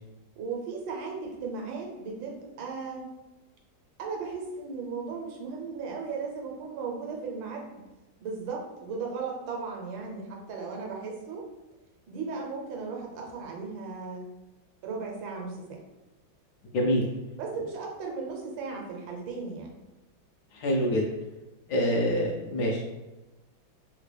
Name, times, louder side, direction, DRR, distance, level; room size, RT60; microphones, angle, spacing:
voice 1, 0.4-3.1 4.0-7.8 8.2-11.5 12.1-14.3 14.8-15.8 17.4-19.7, right 4 dB, 85° right, 0 dB, 1.4 m, -36 dB
voice 2, 16.7-17.0 20.5-21.0 21.7-22.8, equal, 70° left, -1 dB, 1.0 m, -25 dB
3.6 x 2.2 x 3.2 m, 1.1 s
omnidirectional pair, 2.1 m